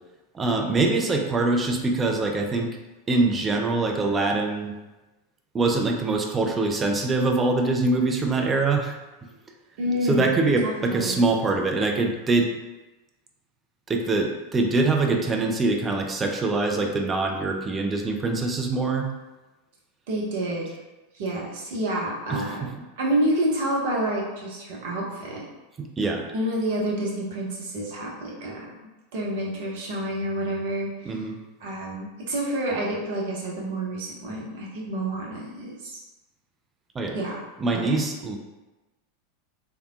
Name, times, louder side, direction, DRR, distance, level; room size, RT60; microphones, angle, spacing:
voice 1, 0.3-2.7 3.1-4.7 5.5-8.9 10.0-12.5 13.9-19.1 22.3-22.7 25.8-26.2 31.0-31.4 36.9-37.2 37.6-38.4, right 3 dB, 20° right, 3 dB, 0.4 m, -24 dB
voice 2, 9.8-10.3 10.6-11.2 20.1-20.7 21.1-22.7 23.0-25.4 26.3-28.7 29.1-31.3 31.6-35.9 37.1-37.3 37.7-37.9, right 1 dB, 55° right, -3 dB, 0.8 m, -28 dB
3.3 x 2.7 x 2.4 m, 1.1 s
figure-of-eight pair, 85°, 0 cm